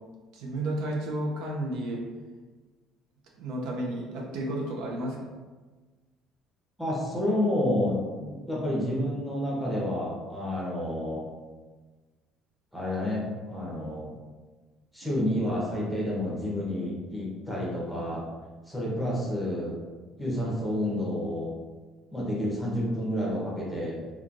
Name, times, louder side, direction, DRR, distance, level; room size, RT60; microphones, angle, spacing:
voice 1, 0.3-2.0 3.4-5.3, right 1 dB, 75° right, -1 dB, 0.5 m, -32 dB
voice 2, 6.8-11.3 12.7-14.1 14.9-18.2 18.7-19.8 20.2-21.5 22.1-24.0, left 1 dB, ahead, -5 dB, 0.8 m, -29 dB
3.0 x 2.3 x 2.5 m, 1.3 s
cardioid pair, 135°, 0 cm